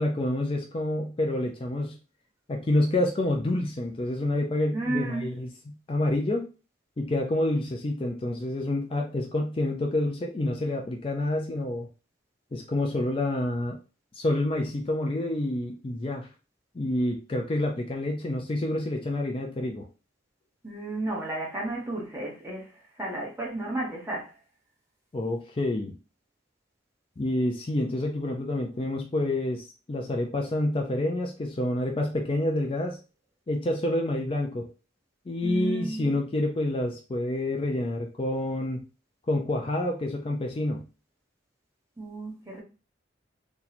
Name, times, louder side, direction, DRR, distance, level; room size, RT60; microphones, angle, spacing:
voice 1, 0.0-2.0 2.5-6.4 7.0-11.9 12.5-13.8 14.1-16.3 16.7-19.9 25.1-25.9 27.2-33.0 33.5-34.7 35.3-38.8 39.3-40.8, left 1 dB, 30° left, 0.4 m, -28 dB
voice 2, 4.7-5.3 20.6-22.7 23.0-24.3 35.4-36.1 42.0-42.6, right 2 dB, 15° right, 1.0 m, -32 dB
2.9 x 2.3 x 4.0 m
head